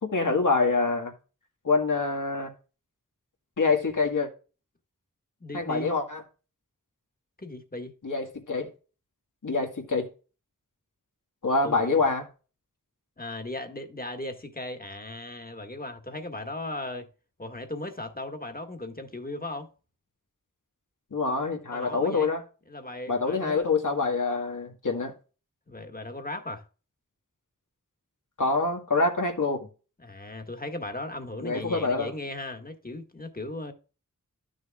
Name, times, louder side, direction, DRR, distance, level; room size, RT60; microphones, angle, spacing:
voice 1, 0.0-1.1 1.6-2.5 3.6-4.3 5.5-6.2 8.0-8.7 9.4-10.1 11.4-12.3 21.1-22.4 23.1-25.1 28.4-29.7 31.4-32.1, left 3 dB, 70° left, 1.9 m, -26 dB
voice 2, 5.4-5.9 7.4-7.9 11.6-12.0 13.2-17.1 17.4-19.7 21.7-22.3 22.7-23.7 25.7-26.6 30.0-33.7, left 2 dB, 25° left, 1.8 m, -37 dB
12.5 x 6.4 x 2.4 m
wide cardioid pair, 45°, 32 cm